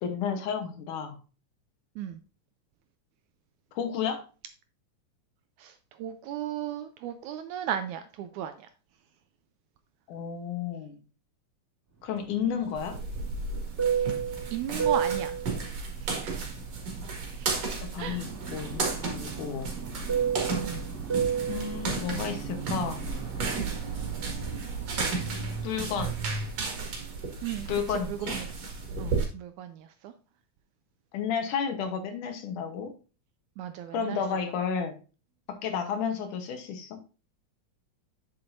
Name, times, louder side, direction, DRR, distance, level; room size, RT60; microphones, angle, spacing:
voice 1, 0.0-1.2 3.8-4.2 10.1-11.0 12.0-13.0 17.8-19.7 21.5-23.0 25.6-26.2 27.7-28.4 31.1-32.9 33.9-34.9 35.5-37.0, left 7 dB, 75° left, 6 dB, 2.5 m, -32 dB
voice 2, 6.0-8.5 14.5-15.3 16.0-16.5 17.4-17.5 18.0-18.3 20.5-20.8 27.4-28.5 29.0-29.8 30.0-30.1 33.6-34.2, right 10 dB, 80° right, 9 dB, 1.8 m, -35 dB
Fixed-wing aircraft airplane, 12.2-17.5 17.9-23.7, right 7 dB, 20° right, 3.1 m, -33 dB
sound 1, 12.8-29.3, right 4 dB, 55° right, 2.9 m, -33 dB
8.9 x 7.5 x 2.6 m, 0.33 s
omnidirectional pair, 3.8 m